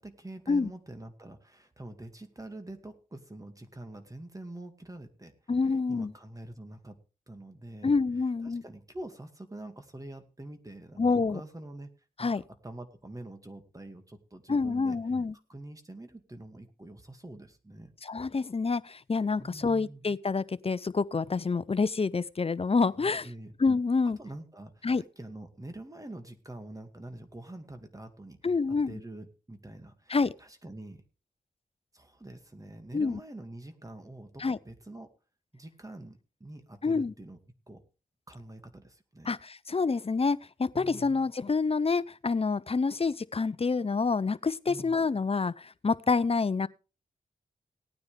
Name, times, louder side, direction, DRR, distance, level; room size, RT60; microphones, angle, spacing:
voice 1, 0.0-7.0 7.3-8.0 8.4-11.9 12.2-15.0 15.5-17.9 19.4-20.1 23.0-23.5 24.2-28.4 28.9-31.0 31.9-35.1 35.5-37.4 37.7-37.8 38.3-39.3 40.7-41.1 44.7-45.0, right 1 dB, 20° right, 2.3 m, -45 dB
voice 2, 5.5-6.1 7.8-8.6 11.0-11.4 12.2-12.4 14.5-15.3 18.0-23.3 23.6-24.2 24.8-25.0 28.4-29.0 30.1-30.3 32.9-33.2 34.4-34.6 36.8-37.1 39.3-46.7, left 4 dB, 40° left, 0.7 m, -27 dB
18.0 x 9.6 x 3.5 m
cardioid pair, 50°, 15 cm